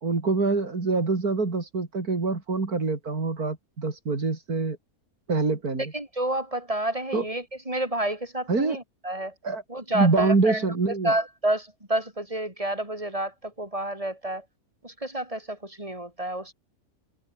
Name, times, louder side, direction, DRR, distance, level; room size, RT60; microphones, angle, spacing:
voice 1, 0.0-4.8 5.3-5.8 7.1-7.2 8.5-8.8 9.4-9.6 9.9-11.1, right 3 dB, 80° right, 3.9 m, -25 dB
voice 2, 5.8-9.3 9.7-14.5 14.8-16.5, right 1 dB, 20° right, 6.5 m, -29 dB
omnidirectional pair, 1.6 m